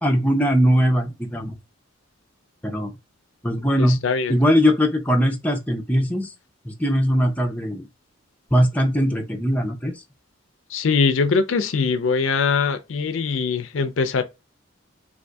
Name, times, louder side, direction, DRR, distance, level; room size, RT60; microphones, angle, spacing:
voice 1, 0.0-1.6 2.6-2.9 3.4-4.0 4.3-6.3 6.6-7.9 8.5-10.0, equal, 5° left, 0.5 m, -20 dB
voice 2, 3.8-4.4 10.7-14.2, left 5 dB, 70° left, 0.5 m, -22 dB
2.6 x 2.6 x 3.4 m
head